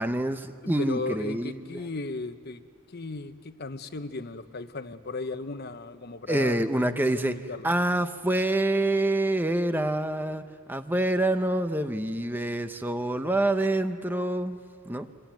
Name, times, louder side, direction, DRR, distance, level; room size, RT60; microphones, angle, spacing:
voice 1, 0.0-1.9 6.3-7.4 7.6-10.4 10.7-14.6 14.9-15.1, right 1 dB, 10° right, 9 dB, 0.8 m, -26 dB
voice 2, 0.6-2.6 2.9-7.7, left 3 dB, 50° left, 10 dB, 1.0 m, -36 dB
25.5 x 24.5 x 9.2 m, 2.1 s
head